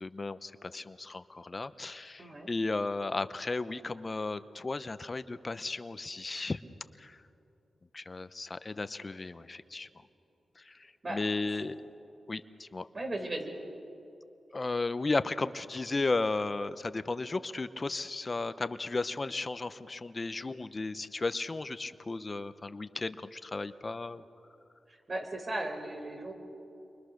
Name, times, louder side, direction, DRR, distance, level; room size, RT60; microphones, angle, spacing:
voice 1, 0.0-6.6 7.0-7.2 7.9-9.9 10.6-10.8 11.1-11.8 12.3-12.9 14.5-24.2, left 3 dB, 35° left, 12 dB, 0.9 m, -34 dB
voice 2, 2.2-2.5 11.0-11.2 12.9-13.5 25.1-26.3, right 1 dB, 40° right, 3 dB, 4.6 m, -36 dB
30.0 x 24.5 x 6.6 m, 2.8 s
cardioid pair, 60°, 0 cm